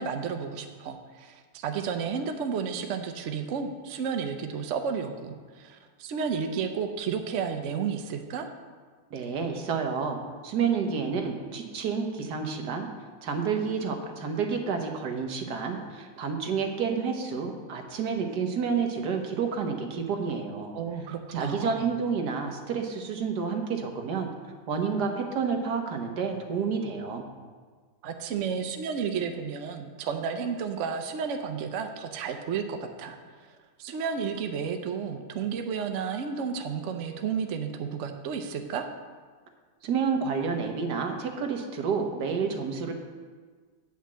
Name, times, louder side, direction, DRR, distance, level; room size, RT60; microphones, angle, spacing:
voice 1, 0.0-8.5 20.7-21.9 28.0-38.9, right 6 dB, 85° right, 5 dB, 0.6 m, -32 dB
voice 2, 9.1-10.2 10.4-12.9 13.2-20.8 21.3-24.3 24.7-27.2 39.8-42.9, right 5 dB, 60° right, 3 dB, 1.4 m, -29 dB
8.7 x 5.8 x 7.4 m, 1.5 s
omnidirectional pair, 2.2 m